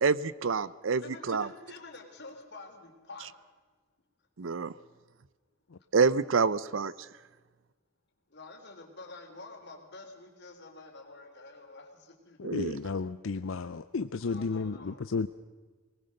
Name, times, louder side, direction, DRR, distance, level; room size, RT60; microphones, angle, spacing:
voice 1, 0.0-1.5 4.4-4.7 5.9-6.9 12.4-12.7, right 5 dB, 65° right, 18 dB, 0.6 m, -27 dB
voice 2, 1.0-3.3 8.3-12.4 14.2-14.9, left 3 dB, 55° left, 2 dB, 3.6 m, -48 dB
voice 3, 12.4-15.3, left 4 dB, 70° left, 11 dB, 0.6 m, -33 dB
22.5 x 19.5 x 6.6 m, 1.4 s
head